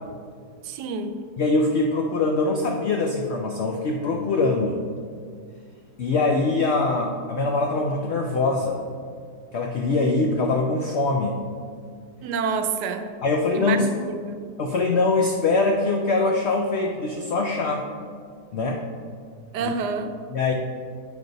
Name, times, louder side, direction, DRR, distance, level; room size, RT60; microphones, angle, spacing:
voice 1, 0.6-1.1 12.2-13.1 13.5-14.4 19.5-20.1, right 5 dB, 80° right, 8 dB, 1.1 m, -28 dB
voice 2, 1.4-4.8 6.0-8.8 9.5-11.4 13.2-13.8 14.6-17.9 18.5-18.8 19.6-19.7 20.3-20.5, left 3 dB, 85° left, 2 dB, 0.5 m, -23 dB
8.1 x 5.0 x 3.9 m, 2.1 s
omnidirectional pair, 1.8 m